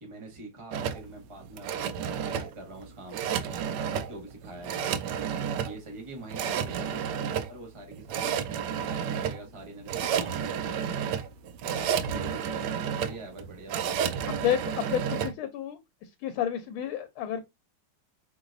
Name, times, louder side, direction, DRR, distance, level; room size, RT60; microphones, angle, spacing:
voice 1, 0.0-5.0 5.6-8.4 8.9-10.9 11.6-14.2, right 1 dB, 15° right, 1.3 m, -45 dB
sound 1, 0.7-15.3, right 8 dB, 75° right, 1.0 m, -31 dB
voice 2, 14.3-17.4, left 10 dB, 85° left, 1.5 m, -31 dB
4.9 x 3.9 x 2.5 m
omnidirectional pair, 2.3 m